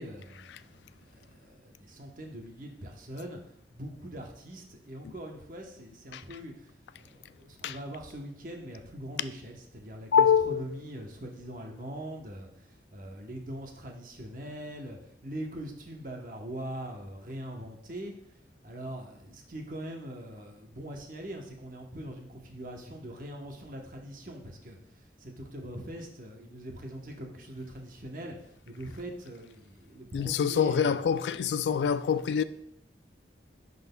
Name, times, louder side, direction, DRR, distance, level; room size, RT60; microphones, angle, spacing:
voice 1, 0.0-3.4 3.7-18.1 18.6-24.8 25.2-28.4 28.7-30.9, right 1 dB, 50° right, 0.9 m, -42 dB
voice 2, 10.1-10.6 30.1-32.4, left 7 dB, 80° left, 0.3 m, -25 dB
10.5 x 3.9 x 2.2 m
head